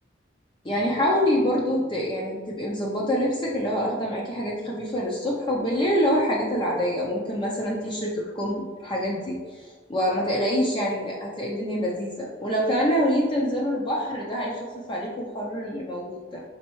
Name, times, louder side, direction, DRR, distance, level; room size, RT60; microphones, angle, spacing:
voice 1, 0.6-16.4, equal, 25° left, -3 dB, 0.5 m, -26 dB
4.2 x 3.5 x 3.0 m, 1.4 s
head